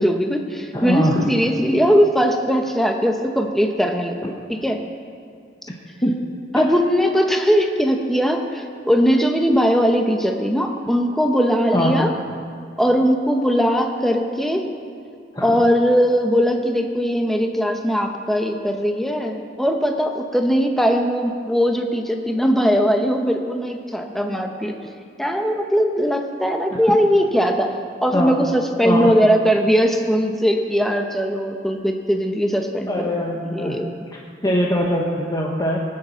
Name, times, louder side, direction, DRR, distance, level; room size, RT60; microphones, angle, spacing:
voice 1, 0.0-4.8 6.5-12.1 12.8-14.6 15.4-24.8 25.2-27.7 28.0-32.9 33.5-33.9, equal, ahead, 3 dB, 0.9 m, -20 dB
voice 2, 0.7-1.3 6.0-6.1 11.7-12.0 15.3-15.6 26.7-26.8 28.1-28.5 28.8-29.1 32.9-33.8 34.4-35.8, equal, 20° left, -1 dB, 1.0 m, -22 dB
20.0 x 9.6 x 5.7 m, 2.3 s
head